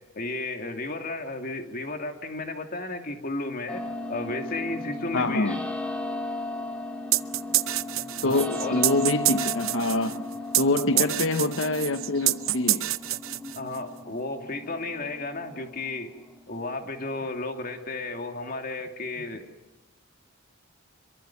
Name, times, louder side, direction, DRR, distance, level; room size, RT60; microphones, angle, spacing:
voice 1, 0.1-3.8 4.1-5.6 8.2-8.8 10.9-11.1 13.6-16.1 16.5-19.4, left 2 dB, 45° left, 2.7 m, -33 dB
sound 1, 3.7-17.6, left 2 dB, 5° left, 2.4 m, -36 dB
voice 2, 5.1-5.6 8.2-10.2 10.6-12.9, left 2 dB, 70° left, 1.0 m, -25 dB
sound 2, 7.1-13.8, right 15 dB, 80° right, 0.8 m, -27 dB
26.5 x 23.5 x 7.2 m
head